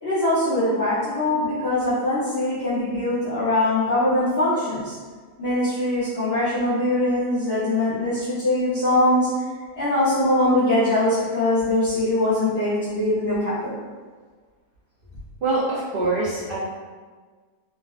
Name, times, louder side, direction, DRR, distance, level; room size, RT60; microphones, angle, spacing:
voice 1, 0.0-5.0 5.4-9.3 9.7-13.8, left 1 dB, 45° left, -13 dB, 1.1 m, -22 dB
voice 2, 15.4-16.6, right 2 dB, 85° right, -8 dB, 0.4 m, -24 dB
3.6 x 2.2 x 2.4 m, 1.5 s
omnidirectional pair, 1.7 m